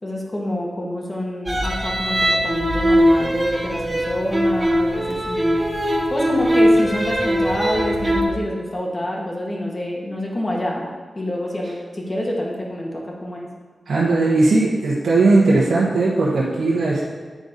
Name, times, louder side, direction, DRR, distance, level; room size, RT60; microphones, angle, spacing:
voice 1, 0.0-5.6 6.1-10.9 11.1-13.5, left 1 dB, 35° left, -2 dB, 1.9 m, -27 dB
sound 1, 1.5-8.2, equal, 25° right, 1.4 m, -20 dB
voice 2, 13.9-17.0, right 3 dB, 80° right, -6 dB, 1.1 m, -18 dB
8.7 x 4.0 x 5.1 m, 1.4 s
cardioid pair, 45°, 0 cm